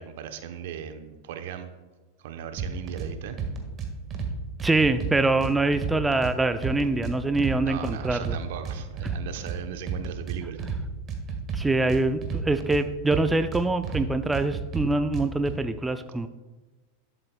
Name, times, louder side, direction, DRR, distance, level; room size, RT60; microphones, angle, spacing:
voice 1, 0.0-1.7 2.2-3.4 7.6-10.6, right 9 dB, 65° right, 8 dB, 0.8 m, -37 dB
sound 1, 2.6-3.1 3.4-4.3 4.6-6.3 6.6-7.5 7.8-9.6 9.9-10.8 11.1-12.8 13.1-14.0 14.3-15.5, right 6 dB, 35° right, 1.6 m, -31 dB
voice 2, 4.6-8.4 11.5-16.3, right 2 dB, 10° right, 10 dB, 0.4 m, -24 dB
11.5 x 7.6 x 2.2 m, 1.2 s
hypercardioid pair, 100°, 0 cm